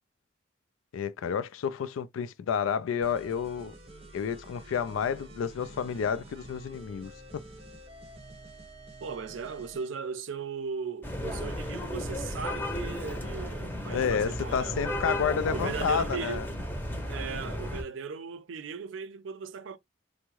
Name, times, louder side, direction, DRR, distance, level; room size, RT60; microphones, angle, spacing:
voice 1, 0.9-3.7 4.1-7.1 13.9-16.5, left 7 dB, 90° left, 0.3 m, -30 dB
sound 1, 3.0-9.9, right 1 dB, 30° right, 0.8 m, -49 dB
voice 2, 9.0-15.1 15.5-16.4 17.1-19.8, right 5 dB, 75° right, 0.4 m, -37 dB
sound 2, 11.0-17.8, left 1 dB, 10° left, 0.6 m, -34 dB
3.4 x 2.1 x 3.0 m
head